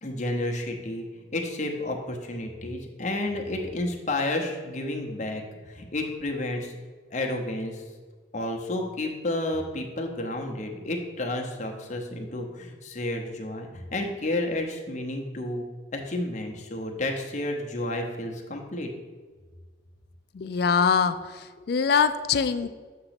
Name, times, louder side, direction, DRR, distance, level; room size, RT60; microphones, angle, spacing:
voice 1, 0.0-1.1 1.3-6.8 7.1-7.8 8.3-15.6 15.9-18.9, left 1 dB, 40° left, 2 dB, 0.8 m, -31 dB
voice 2, 20.3-22.7, left 6 dB, 55° left, 10 dB, 0.3 m, -23 dB
7.3 x 2.9 x 5.8 m, 1.4 s
head